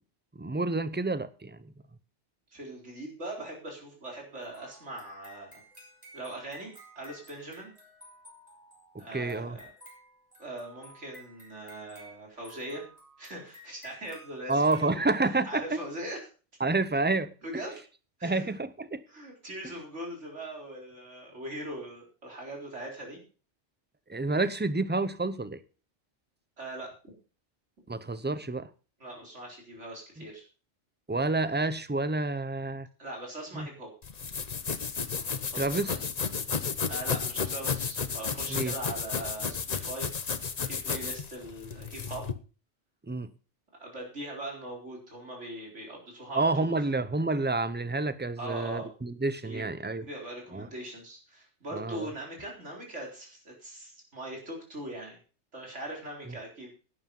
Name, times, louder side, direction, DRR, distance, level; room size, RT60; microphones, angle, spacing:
voice 1, 0.4-1.6 8.9-9.6 14.5-15.8 16.6-17.3 18.2-19.0 24.1-25.6 27.9-28.7 31.1-32.9 33.5-33.7 35.5-35.9 38.5-38.7 43.1-43.3 46.3-50.0 50.5-50.7 51.7-52.1, right 3 dB, 10° right, 0.5 m, -29 dB
voice 2, 2.5-5.6 6.1-6.7 7.0-7.7 9.0-9.7 10.4-12.8 13.2-15.0 15.4-16.3 17.4-17.8 18.2-18.6 19.1-23.2 26.6-26.9 29.0-30.5 33.0-33.9 35.4-36.0 36.9-42.3 43.8-46.8 48.4-48.9 49.4-49.7 50.0-55.2 55.5-56.7, right 1 dB, 85° right, 4.4 m, -41 dB
sound 1, 4.4-15.0, right 1 dB, 35° right, 5.1 m, -54 dB
sound 2, 34.0-42.3, left 6 dB, 40° left, 0.8 m, -33 dB
11.5 x 9.8 x 5.4 m
omnidirectional pair, 1.2 m